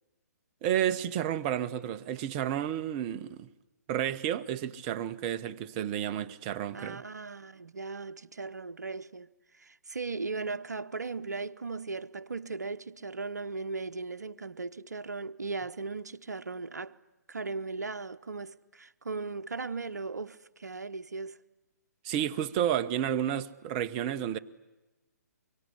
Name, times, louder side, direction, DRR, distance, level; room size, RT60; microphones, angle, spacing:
voice 1, 0.6-3.5 3.9-7.0 22.0-24.4, right 10 dB, 25° right, 0.9 m, -31 dB
voice 2, 6.7-9.3 9.6-17.0 17.3-21.4, right 3 dB, 75° right, 0.9 m, -37 dB
24.0 x 24.0 x 10.0 m
figure-of-eight pair, 130°, 9 cm